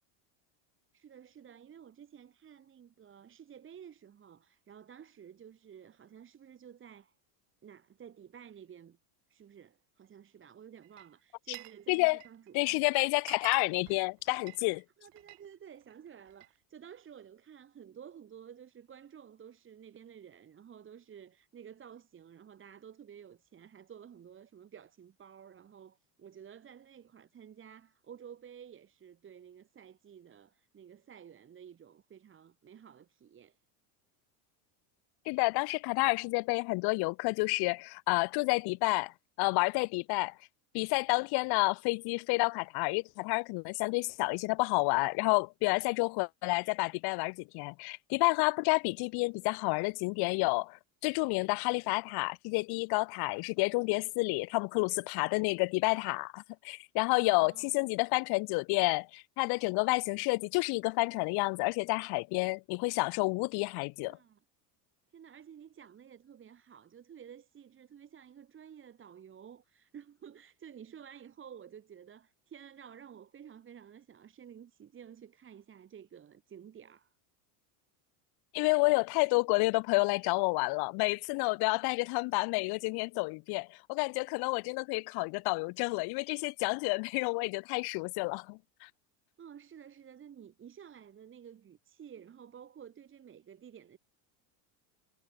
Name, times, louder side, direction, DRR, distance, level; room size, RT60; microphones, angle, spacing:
voice 1, 0.9-7.1 7.6-9.0 9.3-12.8 15.0-33.6 57.1-57.8 64.0-64.4 65.1-77.1 89.4-94.0, right 8 dB, 25° right, 1.5 m, -52 dB
Glass, 10.8-11.8 12.1-12.5 12.9-13.0 13.2-15.5 15.8-16.6, right 25 dB, 60° right, 1.8 m, -50 dB
voice 2, 11.9-12.2 12.5-14.8 35.3-39.1 39.4-40.4 40.7-64.2 78.5-88.9, left 28 dB, 55° left, 0.6 m, -30 dB
supercardioid pair, 130°, 47 cm